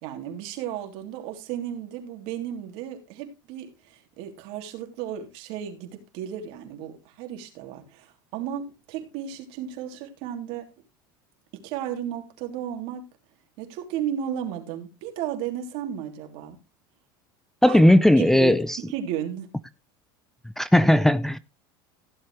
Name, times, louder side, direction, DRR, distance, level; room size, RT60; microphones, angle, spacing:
voice 1, 0.0-10.7 11.5-13.0 13.6-16.6 17.7-17.8 18.2-19.5, right 9 dB, 65° right, 3.2 m, -34 dB
voice 2, 17.6-18.8 20.6-21.4, left 1 dB, 5° left, 0.4 m, -17 dB
16.0 x 7.6 x 3.2 m
supercardioid pair, 115°, 11 cm